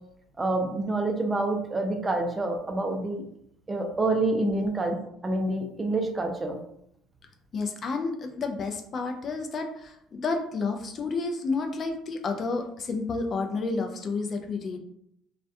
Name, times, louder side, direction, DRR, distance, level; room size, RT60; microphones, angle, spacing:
voice 1, 0.4-3.2 3.7-5.0 5.2-6.6, right 2 dB, 20° right, 3 dB, 0.4 m, -27 dB
voice 2, 7.5-14.8, left 4 dB, 45° left, 4 dB, 0.4 m, -30 dB
2.2 x 2.2 x 2.6 m, 0.74 s
supercardioid pair, 80°, 0 cm